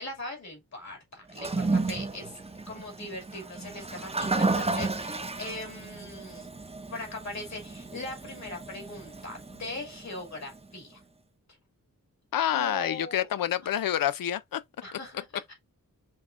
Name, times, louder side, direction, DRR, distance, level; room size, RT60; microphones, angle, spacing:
voice 1, 0.0-2.4 2.7-6.5 6.9-11.0 12.5-13.3 14.8-15.5, left 2 dB, 55° left, 2.4 m, -40 dB
Toilet flush, 1.3-10.6, right 3 dB, 20° right, 0.6 m, -33 dB
voice 2, 12.3-14.6 14.9-15.0, left 11 dB, 80° left, 0.5 m, -28 dB
5.4 x 3.6 x 2.5 m
wide cardioid pair, 125°, 34 cm